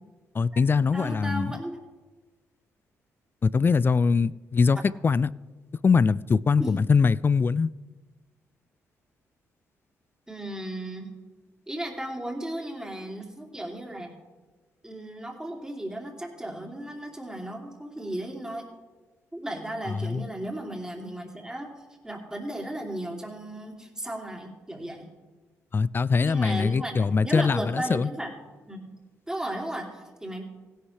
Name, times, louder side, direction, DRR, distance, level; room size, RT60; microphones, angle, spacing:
voice 1, 0.3-1.5 3.4-4.8 5.0-5.3 5.8-7.7 20.0-20.2 25.7-28.1, left 5 dB, 35° left, 0.4 m, -22 dB
voice 2, 0.9-1.8 6.6-6.8 10.3-11.1 11.7-14.1 14.8-18.7 19.3-21.7 22.0-25.1 26.2-28.3 28.7-28.9 29.3-30.4, right 1 dB, 10° right, 2.9 m, -35 dB
16.5 x 11.5 x 3.3 m
supercardioid pair, 50°, 6 cm